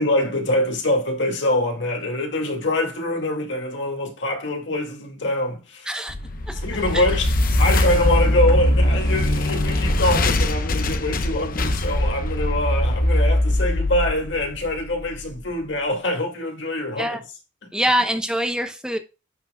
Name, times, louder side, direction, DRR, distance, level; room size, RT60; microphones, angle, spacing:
voice 1, 0.0-6.0 6.5-17.2, left 1 dB, 70° left, 2.3 m, -24 dB
sound 1, 6.1-15.2, left 1 dB, 50° left, 0.8 m, -21 dB
voice 2, 17.7-19.0, equal, 5° right, 0.8 m, -24 dB
10.5 x 6.0 x 2.3 m
head